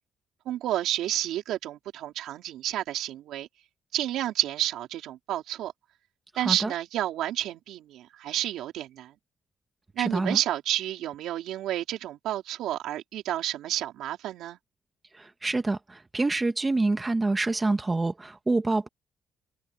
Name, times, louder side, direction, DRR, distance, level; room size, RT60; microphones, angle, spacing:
voice 1, 0.4-3.5 3.9-5.7 6.4-9.1 9.9-14.6, right 13 dB, 85° right, 4.6 m, -30 dB
voice 2, 6.4-6.7 10.0-10.4 15.2-18.9, right 2 dB, 20° right, 2.2 m, -27 dB
cardioid pair, 90°, 0 cm